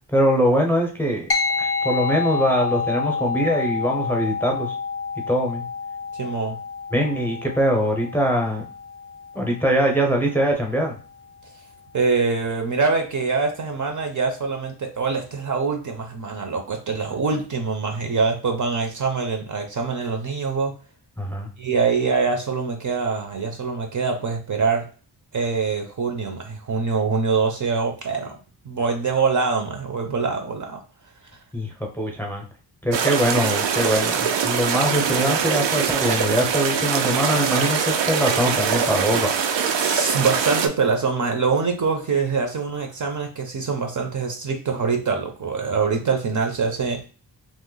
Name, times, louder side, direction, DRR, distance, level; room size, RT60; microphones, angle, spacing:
voice 1, 0.1-1.3 1.6-4.7 5.3-5.7 6.9-8.6 9.3-10.9 21.2-21.5 31.5-32.4 32.8-39.3, equal, 5° left, 1 dB, 0.7 m, -22 dB
sound 1, 1.3-11.0, left 5 dB, 35° left, 0.4 m, -29 dB
voice 2, 6.1-6.6 11.9-20.7 21.6-24.8 25.3-28.3 28.6-30.8 39.7-47.1, right 4 dB, 45° right, 3 dB, 0.6 m, -24 dB
sound 2, 32.9-40.7, right 7 dB, 90° right, 0.6 m, -23 dB
3.0 x 2.1 x 3.7 m, 0.36 s
wide cardioid pair, 130°, 43 cm